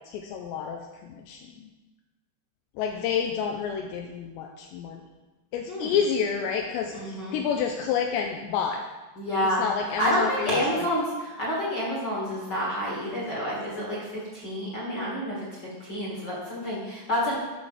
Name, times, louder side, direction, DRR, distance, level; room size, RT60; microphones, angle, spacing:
voice 1, 0.1-1.7 2.8-5.0 5.5-8.8 9.6-10.9, left 7 dB, 85° left, 2 dB, 2.6 m, -29 dB
voice 2, 6.9-7.4 9.2-17.3, equal, 35° left, -6 dB, 2.0 m, -29 dB
12.5 x 6.3 x 5.0 m, 1.1 s
omnidirectional pair, 5.6 m